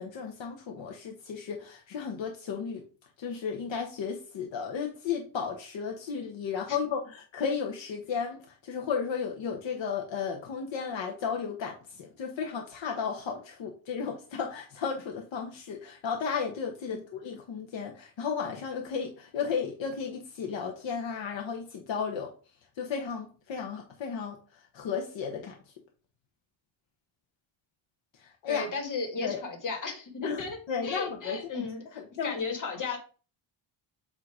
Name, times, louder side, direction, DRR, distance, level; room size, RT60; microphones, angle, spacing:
voice 1, 0.0-2.8 3.2-22.3 22.8-24.4 24.7-25.5 28.2-28.7 29.2-29.4 30.2-30.4 30.7-31.7 32.2-32.3, left 6 dB, 65° left, 1.0 m, -34 dB
voice 2, 28.5-33.0, left 4 dB, 40° left, 1.6 m, -35 dB
7.6 x 2.8 x 4.8 m
wide cardioid pair, 175°, 49 cm